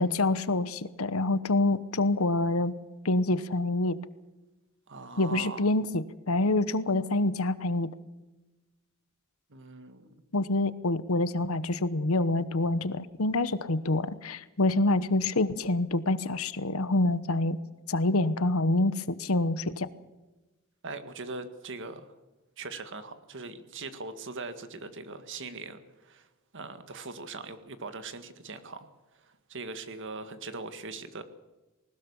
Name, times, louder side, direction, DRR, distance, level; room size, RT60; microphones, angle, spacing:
voice 1, 0.0-2.7 3.0-4.0 5.2-7.9 10.3-17.6 17.9-19.9, left 2 dB, 70° left, 15 dB, 1.0 m, -26 dB
voice 2, 4.9-5.7 9.5-10.1 20.8-22.1 22.6-26.3 26.5-28.9 29.2-31.2, right 3 dB, 60° right, 10 dB, 1.9 m, -41 dB
20.5 x 19.0 x 7.2 m, 1.1 s
head